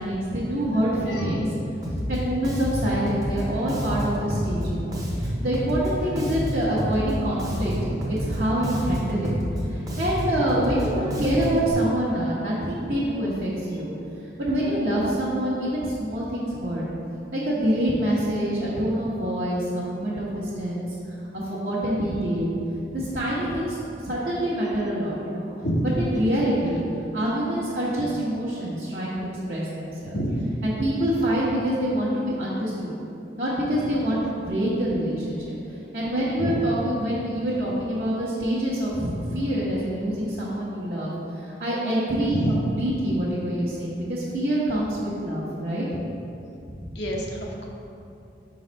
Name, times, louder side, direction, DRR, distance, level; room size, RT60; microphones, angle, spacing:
voice 1, 0.0-1.4 2.1-9.3 9.6-13.9 14.4-16.8 17.3-21.0 21.3-22.6 22.9-25.5 26.0-26.8 27.1-30.2 30.6-32.9 33.4-35.6 35.9-41.1 41.4-45.9 46.7-47.0, right 1 dB, 55° right, -9 dB, 1.1 m, -26 dB
Bass guitar, 1.8-11.7, equal, 20° right, 0.8 m, -29 dB
voice 2, 30.1-30.4 36.4-36.6 39.3-39.4 42.3-42.6 46.9-47.7, equal, 75° left, -1 dB, 0.9 m, -27 dB
5.3 x 4.0 x 5.3 m, 2.7 s
head